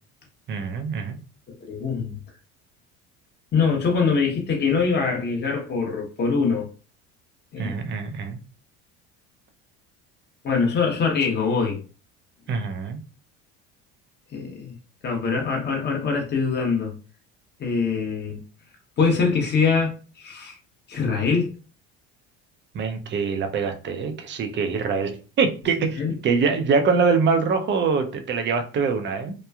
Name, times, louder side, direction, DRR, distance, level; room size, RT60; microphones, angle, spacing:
voice 1, 0.5-1.2 7.6-8.4 12.5-13.0 22.7-29.3, right 5 dB, 35° right, 0.6 m, -24 dB
voice 2, 1.6-2.2 3.5-6.7 7.5-7.9 10.4-11.8 14.3-14.7 15.0-16.9 17.6-18.4 19.0-20.6 20.9-21.6 26.0-26.1, left 5 dB, 30° left, 1.0 m, -23 dB
3.0 x 2.2 x 2.3 m
supercardioid pair, 95°, 32 cm